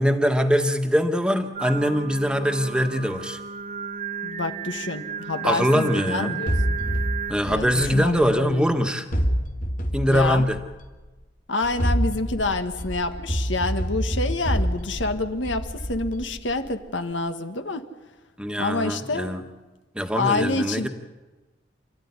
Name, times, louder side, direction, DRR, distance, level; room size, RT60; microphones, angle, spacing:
voice 1, 0.0-3.4 5.4-6.4 7.3-9.0 9.9-10.6 18.4-19.4 19.9-20.9, equal, 5° right, 6 dB, 1.4 m, -22 dB
Singing, 1.5-7.3, right 6 dB, 50° right, 1.1 m, -34 dB
voice 2, 4.2-6.8 7.5-8.7 10.1-10.4 11.5-17.8 18.6-19.3 20.1-20.9, left 3 dB, 85° left, 8 dB, 1.6 m, -27 dB
sound 1, 6.5-8.6 9.1-10.9 11.6-16.7, equal, 45° left, 2.3 m, -27 dB
28.0 x 14.0 x 9.8 m, 1.2 s
head